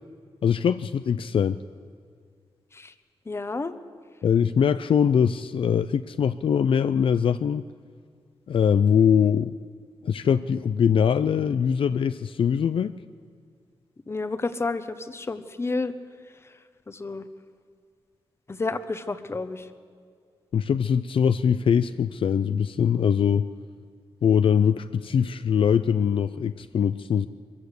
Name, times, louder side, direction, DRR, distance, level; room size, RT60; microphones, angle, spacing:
voice 1, 0.4-1.6 4.2-7.6 8.5-9.5 10.0-12.9 20.5-23.5 24.2-27.3, left 7 dB, 70° left, 12 dB, 0.4 m, -22 dB
voice 2, 3.3-3.7 14.1-15.9 16.4-16.6 16.9-17.3 18.5-19.7, left 3 dB, 25° left, 11 dB, 1.0 m, -30 dB
22.5 x 15.0 x 8.1 m, 2.1 s
wide cardioid pair, 135°, 9 cm